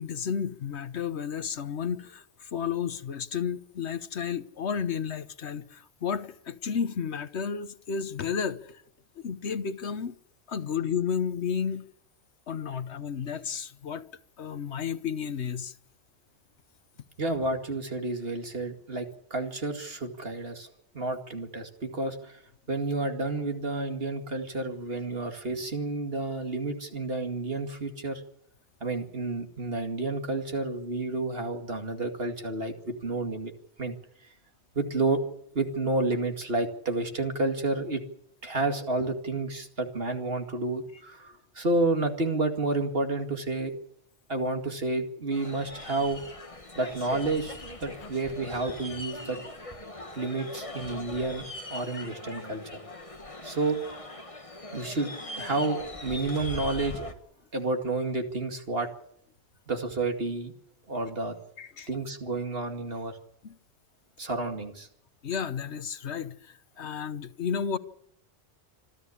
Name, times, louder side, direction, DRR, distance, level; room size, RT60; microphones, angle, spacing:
voice 1, 0.0-8.8 9.2-10.2 10.5-11.9 12.5-14.1 14.4-15.7 61.6-61.9 63.4-63.6 65.2-67.8, left 7 dB, 75° left, 1.3 m, -32 dB
voice 2, 17.2-20.7 20.9-22.4 22.7-28.2 28.8-33.5 33.8-34.0 34.7-35.2 35.5-38.0 38.4-43.8 44.3-46.2 46.8-49.4 50.1-52.8 53.4-53.8 54.7-57.1 57.5-58.9 59.7-60.5 60.9-61.4 61.9-63.2 64.2-64.9, right 2 dB, 60° right, 2.5 m, -30 dB
sound 1, 45.3-57.1, left 2 dB, 30° left, 1.8 m, -41 dB
26.0 x 13.5 x 8.6 m
omnidirectional pair, 1.1 m